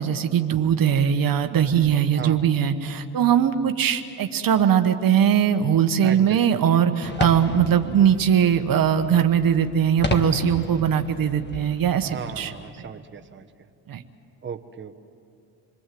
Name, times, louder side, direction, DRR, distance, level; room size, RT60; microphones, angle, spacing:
voice 1, 0.0-12.5 13.9-14.0, right 8 dB, 55° right, 7 dB, 1.2 m, -20 dB
voice 2, 6.0-7.0 12.0-13.5 14.4-15.0, right 6 dB, 25° right, 4 dB, 1.2 m, -37 dB
sound 1, 7.0-12.7, left 3 dB, 25° left, 1.7 m, -34 dB
28.5 x 21.0 x 7.7 m, 2.4 s
cardioid pair, 95°, 42 cm